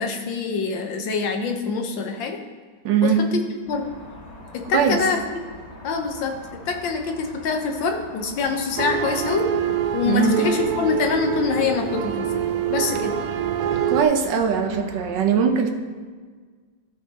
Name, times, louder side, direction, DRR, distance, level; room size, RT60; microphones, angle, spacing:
voice 1, 0.0-2.4 3.0-3.3 3.7-3.9 4.5-5.4 5.8-6.4 6.7-9.5 9.9-12.4 12.7-13.1, left 5 dB, 80° left, 4 dB, 1.6 m, -25 dB
voice 2, 2.8-3.2 4.7-5.0 10.1-10.3 13.9-15.7, right 7 dB, 75° right, 5 dB, 1.4 m, -20 dB
sound 1, 3.7-15.1, equal, 30° left, 0.9 m, -43 dB
sound 2, 8.8-14.0, right 9 dB, 90° right, 0.7 m, -25 dB
14.5 x 5.5 x 2.8 m, 1.5 s
omnidirectional pair, 2.1 m